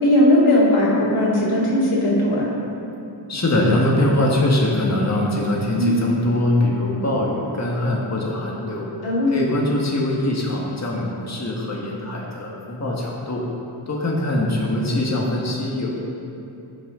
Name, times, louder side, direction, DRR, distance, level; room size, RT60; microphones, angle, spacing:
voice 1, 0.0-2.5 5.8-6.2 9.0-9.3, left 1 dB, 85° left, -5 dB, 2.4 m, -18 dB
voice 2, 3.3-8.9 9.3-13.5 13.9-16.0, left 1 dB, 35° left, -3 dB, 1.6 m, -22 dB
15.0 x 6.5 x 3.8 m, 2.7 s
cardioid pair, 65°, 49 cm